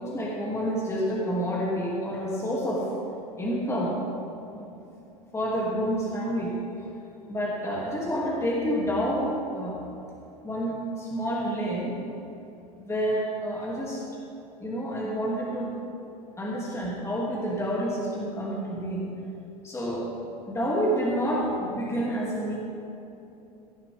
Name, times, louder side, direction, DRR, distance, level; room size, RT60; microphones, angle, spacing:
voice 1, 0.0-2.9 3.4-3.9 4.5-4.7 5.3-6.8 7.3-9.8 10.4-11.9 12.8-14.0 14.6-15.7 16.4-19.1 19.6-20.1 20.5-22.6, equal, 15° left, -5 dB, 2.7 m, -28 dB
17.0 x 11.5 x 3.6 m, 2.8 s
hypercardioid pair, 85°, 21 cm